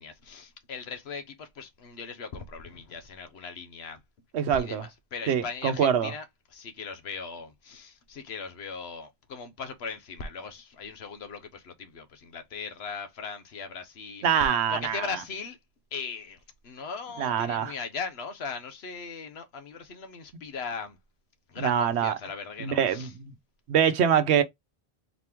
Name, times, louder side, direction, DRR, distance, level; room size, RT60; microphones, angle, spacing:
voice 1, 0.0-4.0 4.5-6.2 6.5-14.3 14.7-15.6 15.9-16.4 16.6-21.0 21.5-23.1, left 5 dB, 75° left, 1.0 m, -39 dB
voice 2, 4.3-4.9 5.3-6.1 14.2-15.2 17.2-17.7 21.6-22.2 22.6-23.3 23.7-24.4, right 8 dB, 85° right, 1.0 m, -24 dB
4.1 x 2.9 x 3.4 m
omnidirectional pair, 1.1 m